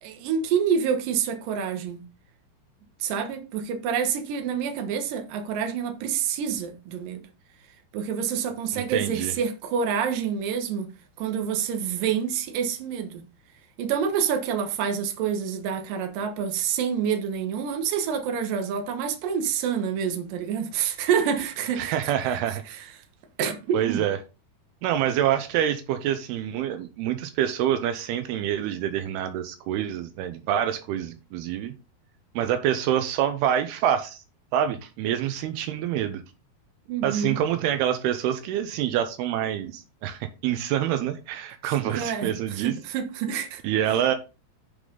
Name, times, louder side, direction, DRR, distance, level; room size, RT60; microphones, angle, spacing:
voice 1, 0.0-2.0 3.0-7.2 7.9-10.9 11.2-13.2 13.8-22.0 22.7-22.9 23.4-24.0 36.9-37.4 41.6-43.6, right 7 dB, 65° right, 2.5 m, -27 dB
voice 2, 8.7-9.3 21.8-22.6 23.7-24.2 24.8-31.7 32.4-34.2 34.5-36.2 37.0-42.7 43.6-44.1, right 10 dB, 85° right, 2.7 m, -26 dB
8.7 x 5.0 x 3.8 m
omnidirectional pair, 4.7 m